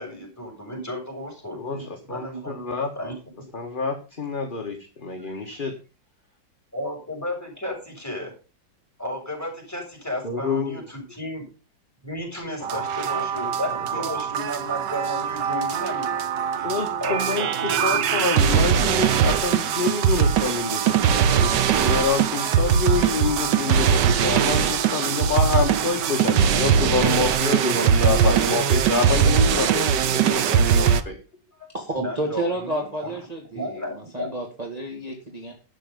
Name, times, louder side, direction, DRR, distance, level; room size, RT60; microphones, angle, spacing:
voice 1, 0.0-2.7 2.9-3.5 6.7-8.3 9.0-11.4 12.0-16.2 16.5-18.3 32.0-33.1 33.5-34.3, equal, 10° left, -1 dB, 6.8 m, -33 dB
voice 2, 1.6-2.9 3.5-5.7 10.2-10.8 12.7-12.8 13.1-13.5 13.9-14.2 16.6-31.2 31.6-31.7, left 4 dB, 30° left, 2 dB, 1.8 m, -27 dB
sound 1, 12.6-31.0, right 8 dB, 70° right, 1.5 m, -21 dB
voice 3, 31.7-33.7 34.1-35.5, right 1 dB, 20° right, 0 dB, 2.2 m, -30 dB
12.0 x 8.3 x 5.4 m, 0.32 s
omnidirectional pair, 2.0 m